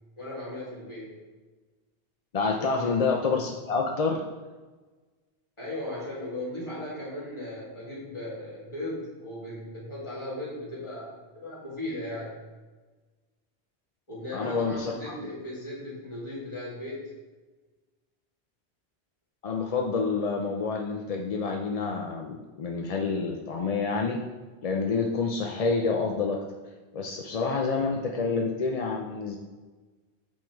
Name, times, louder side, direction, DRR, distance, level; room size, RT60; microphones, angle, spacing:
voice 1, 0.2-1.1 2.6-2.9 5.6-12.3 14.1-17.1, left 1 dB, 25° left, -7 dB, 2.5 m, -37 dB
voice 2, 2.3-4.2 14.3-14.9 19.4-24.2 24.6-26.4 26.9-29.4, left 4 dB, 45° left, 1 dB, 0.5 m, -28 dB
7.5 x 3.8 x 4.6 m, 1.3 s
omnidirectional pair, 1.1 m